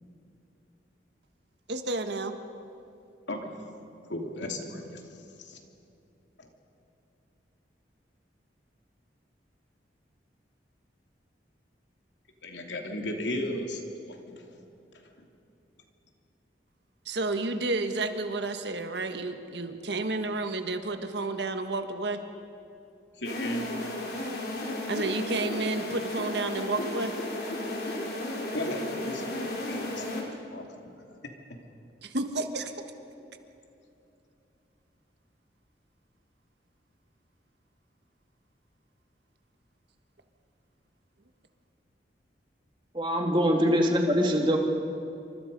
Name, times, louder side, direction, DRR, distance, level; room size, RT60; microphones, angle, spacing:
voice 1, 1.7-2.3 17.0-22.2 24.9-27.1 32.0-32.7, right 2 dB, 70° right, 7 dB, 1.6 m, -31 dB
voice 2, 4.0-5.6 6.4-6.5 12.4-14.5 15.2-15.3 23.1-23.7 28.5-31.3, left 1 dB, 85° left, 2 dB, 2.9 m, -36 dB
sound 1, 23.2-30.2, left 1 dB, 55° left, 3.9 m, -34 dB
voice 3, 42.9-44.6, equal, 25° right, 2 dB, 2.3 m, -23 dB
28.0 x 25.0 x 5.4 m, 2.7 s
head